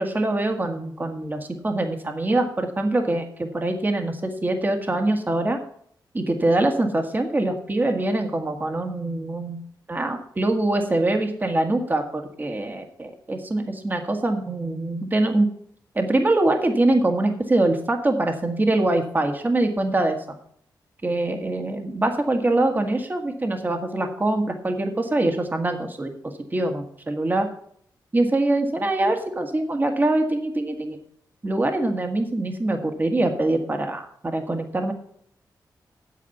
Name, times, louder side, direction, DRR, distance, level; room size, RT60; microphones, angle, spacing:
voice 1, 0.0-5.6 6.1-9.6 9.9-15.5 15.9-20.2 21.0-27.5 28.1-31.0 31.4-34.9, right 2 dB, 25° right, 5 dB, 1.5 m, -24 dB
8.6 x 8.3 x 7.1 m, 0.64 s
wide cardioid pair, 110°, 8 cm